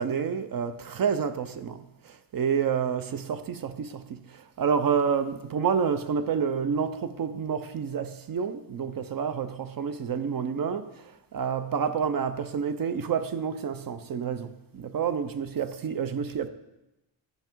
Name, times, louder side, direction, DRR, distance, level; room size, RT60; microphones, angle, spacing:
voice 1, 0.0-1.8 2.0-11.0 11.3-16.5, right 6 dB, 50° right, 0.6 m, -29 dB
11.0 x 5.6 x 4.5 m
cardioid pair, 120°, 46 cm